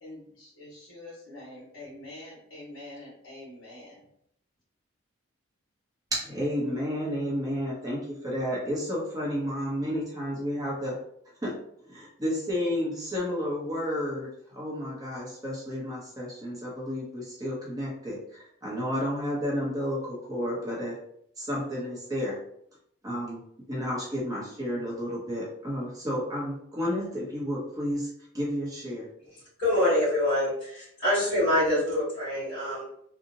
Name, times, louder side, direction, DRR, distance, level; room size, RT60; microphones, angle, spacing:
voice 1, 0.0-4.0, left 1 dB, 75° left, -9 dB, 1.1 m, -45 dB
voice 2, 6.1-11.0 11.4-11.6 11.9-21.0 21.4-22.4 23.0-23.4 23.7-29.1, equal, 20° right, -6 dB, 0.7 m, -31 dB
voice 3, 29.6-32.8, left 1 dB, 55° left, -13 dB, 1.1 m, -25 dB
2.7 x 2.1 x 2.6 m, 0.71 s
head